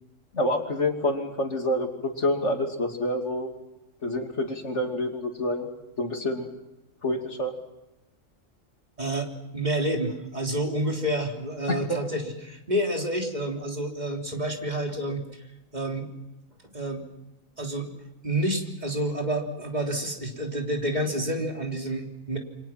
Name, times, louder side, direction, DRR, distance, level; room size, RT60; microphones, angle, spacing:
voice 1, 0.3-3.5 4.0-5.7 6.0-6.5 7.0-7.5 11.7-12.0, left 1 dB, 60° left, 3 dB, 3.1 m, -27 dB
voice 2, 9.0-15.2 15.7-16.1 16.7-17.0 17.6-17.9 18.2-22.4, right 1 dB, 30° right, 1 dB, 3.6 m, -29 dB
28.0 x 25.5 x 6.0 m, 0.95 s
omnidirectional pair, 1.4 m